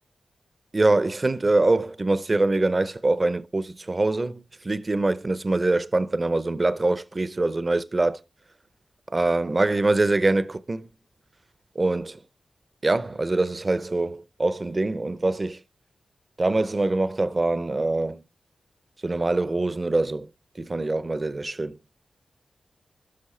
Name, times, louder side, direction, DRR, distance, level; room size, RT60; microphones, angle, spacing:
voice 1, 0.7-8.2 9.1-10.9 11.8-12.2 12.8-15.6 16.4-18.2 19.0-20.3 20.6-21.8, right 2 dB, 30° right, 0.6 m, -24 dB
8.6 x 6.0 x 4.2 m
wide cardioid pair, 90°, 0 cm